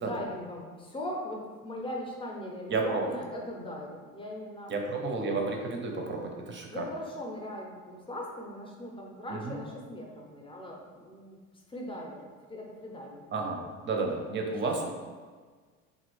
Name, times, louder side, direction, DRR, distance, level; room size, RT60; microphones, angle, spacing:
voice 1, 0.0-4.7 6.7-11.4 11.7-13.7 14.6-14.9, left 1 dB, 15° left, -1 dB, 0.6 m, -39 dB
voice 2, 2.7-3.0 4.7-6.9 9.3-9.6 13.3-14.9, right 3 dB, 30° right, 2 dB, 0.6 m, -31 dB
3.2 x 2.4 x 3.1 m, 1.5 s
hypercardioid pair, 70°, 41 cm